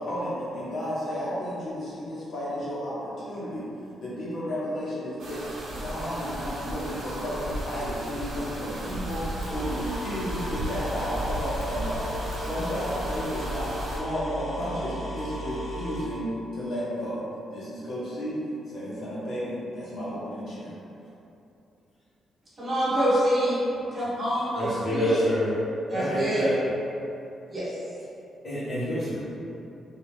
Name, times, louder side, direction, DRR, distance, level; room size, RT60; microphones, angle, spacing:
voice 1, 0.0-3.7 4.0-17.2 17.5-20.7, equal, 60° left, -9 dB, 1.3 m, -32 dB
sound 1, 5.2-14.0, right 1 dB, 65° right, 0.7 m, -35 dB
sound 2, 9.4-16.0, equal, 75° left, 1.1 m, -35 dB
voice 2, 22.6-23.7 23.9-25.2 25.9-26.5 27.5-27.7, equal, 25° right, -11 dB, 1.4 m, -26 dB
voice 3, 24.5-25.5 25.9-26.6 28.4-29.2, equal, 30° left, -15 dB, 1.4 m, -27 dB
3.1 x 2.8 x 3.2 m, 2.8 s
cardioid pair, 125°, 0 cm